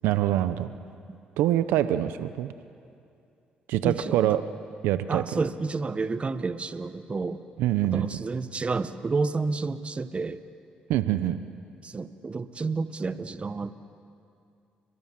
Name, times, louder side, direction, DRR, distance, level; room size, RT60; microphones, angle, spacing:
voice 1, 0.0-0.7 1.4-2.5 3.7-4.4 4.8-5.2 7.6-8.2 10.9-11.4, right 13 dB, 90° right, 12 dB, 0.8 m, -24 dB
voice 2, 3.8-4.4 5.1-7.4 7.9-10.4 11.8-13.7, right 4 dB, 35° right, 12 dB, 1.3 m, -30 dB
30.0 x 22.0 x 7.6 m, 2.5 s
supercardioid pair, 65°, 3 cm